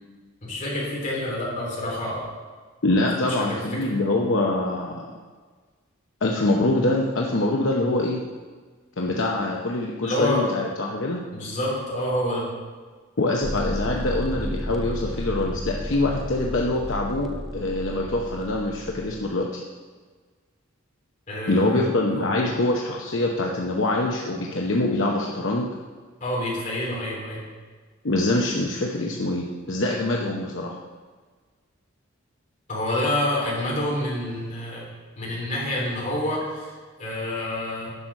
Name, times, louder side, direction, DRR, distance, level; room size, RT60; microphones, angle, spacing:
voice 1, 0.4-2.3 3.2-3.9 10.0-10.4 11.3-12.5 21.3-21.8 22.1-22.3 26.2-27.4 32.7-34.9 35.2-36.7 37.0-37.9, left 1 dB, 40° left, -5 dB, 3.4 m, -28 dB
voice 2, 2.8-5.1 6.2-8.2 9.0-11.2 13.2-19.6 21.5-25.7 28.0-30.8, left 2 dB, 70° left, -1 dB, 0.8 m, -24 dB
sound 1, 13.4-19.3, equal, ahead, 0.5 m, -33 dB
10.0 x 6.1 x 5.3 m, 1.5 s
head